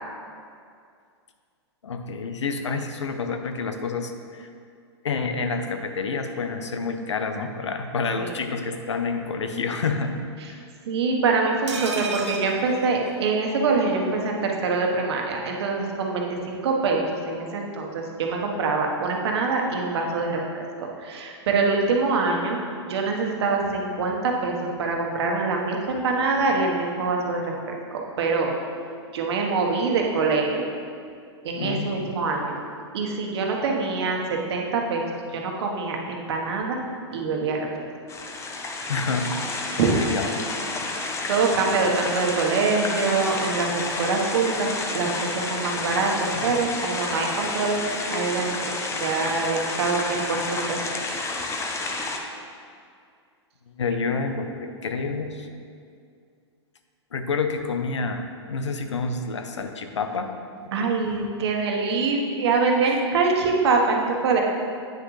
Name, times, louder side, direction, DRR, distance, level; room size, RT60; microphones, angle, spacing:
voice 1, 1.8-4.5 5.0-10.2 10.5-10.6 31.5-32.2 38.9-39.3 39.8-40.9 46.3-46.6 53.7-55.5 57.1-60.3 62.8-63.0, left 4 dB, 85° left, 7 dB, 0.7 m, -29 dB
voice 2, 10.9-17.0 17.3-20.4 21.0-27.5 28.2-28.5 29.1-30.7 31.4-32.6 32.9-35.0 35.3-36.8 37.1-37.6 39.8-40.1 40.8-47.8 48.1-50.8 60.7-64.4, right 4 dB, 65° right, 0 dB, 1.2 m, -24 dB
sound 1, 11.7-13.6 13.9-14.0 14.3-14.4, right 4 dB, 80° right, 0.9 m, -34 dB
sound 2, 38.1-52.2, left 3 dB, 20° left, 0.7 m, -30 dB
9.0 x 6.1 x 3.2 m, 2.3 s
hypercardioid pair, 120°, 15 cm